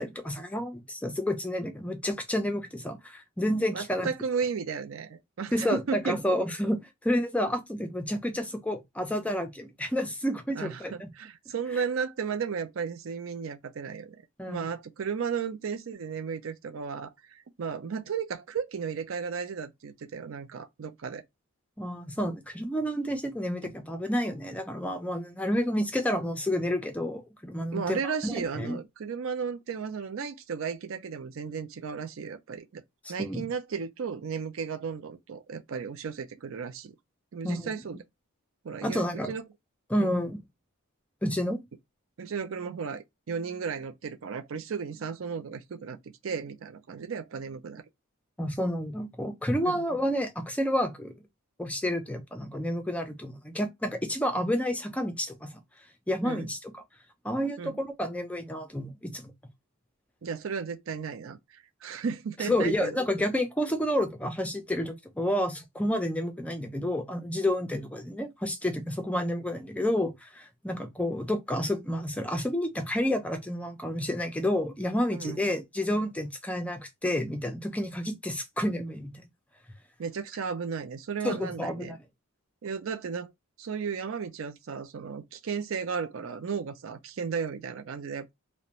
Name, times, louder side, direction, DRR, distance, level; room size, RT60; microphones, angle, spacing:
voice 1, 0.0-4.1 5.5-11.1 14.4-14.7 21.8-28.8 33.0-33.4 37.4-37.7 38.8-39.3 39.9-40.4 41.2-41.6 48.4-51.1 51.6-55.5 56.1-56.6 57.2-59.3 62.4-79.2 81.2-82.0, left 1 dB, 5° left, 0.4 m, -30 dB
voice 2, 3.7-6.2 10.5-14.2 14.5-21.2 23.6-23.7 27.7-32.8 33.1-37.0 37.3-38.0 38.6-39.4 40.0-40.1 42.2-47.8 49.7-49.8 56.2-56.5 57.6-57.8 60.2-63.0 75.1-75.4 80.0-82.0 82.6-83.3 83.6-88.3, right 6 dB, 65° right, 0.4 m, -34 dB
2.5 x 2.1 x 2.9 m
head